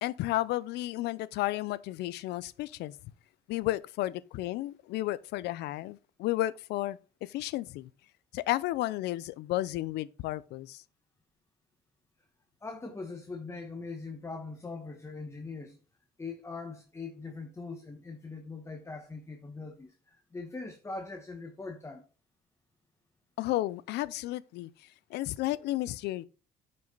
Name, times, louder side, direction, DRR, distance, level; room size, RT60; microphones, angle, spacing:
voice 1, 0.0-3.0 3.5-7.9 8.3-10.8 23.4-24.7 25.1-26.2, left 16 dB, 80° left, 0.5 m, -32 dB
voice 2, 12.6-15.8 16.2-22.1, left 3 dB, 15° left, 1.2 m, -41 dB
9.2 x 5.5 x 3.9 m
cardioid pair, 110°, 17 cm